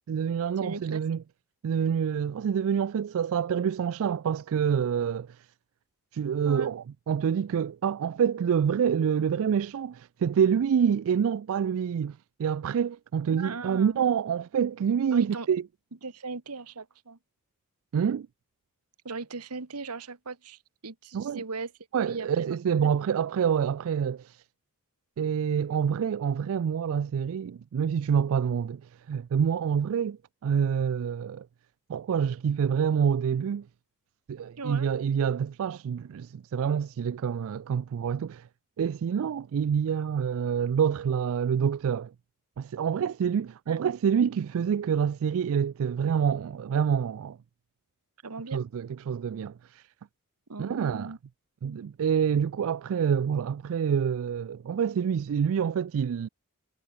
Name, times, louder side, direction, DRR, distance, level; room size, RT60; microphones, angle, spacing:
voice 1, 0.1-1.2 1.6-5.5 6.1-15.6 17.9-18.3 21.1-21.4 21.9-24.4 25.2-31.5 31.9-33.7 34.3-38.5 38.8-42.1 42.6-47.4 48.5-49.9 50.6-51.1 51.6-56.3, right 7 dB, 65° right, 0.3 m, -27 dB
voice 2, 0.6-1.0 6.4-6.7 13.3-14.0 15.1-15.5 16.0-17.2 19.0-21.7 22.1-22.6 22.8-22.9 34.6-34.9 43.7-43.8 48.2-48.6 50.5-51.2 51.6-51.8, right 3 dB, 90° right, 1.5 m, -38 dB
head